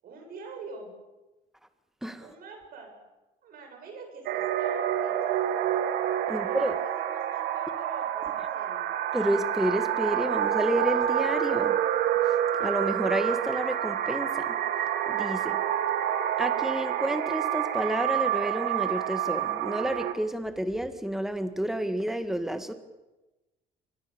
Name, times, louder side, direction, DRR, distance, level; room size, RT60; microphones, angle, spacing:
voice 1, 0.0-0.9 2.2-3.0 3.4-5.7 6.2-8.9, right 3 dB, 60° right, 3 dB, 7.9 m, -46 dB
sound 1, 4.3-20.1, right 11 dB, 75° right, 1.7 m, -28 dB
voice 2, 6.3-6.7 9.1-11.8 12.6-14.6 15.1-15.6 16.4-22.7, right 1 dB, ahead, 9 dB, 1.8 m, -30 dB
25.0 x 20.5 x 7.2 m, 1.1 s
cardioid pair, 110°, 17 cm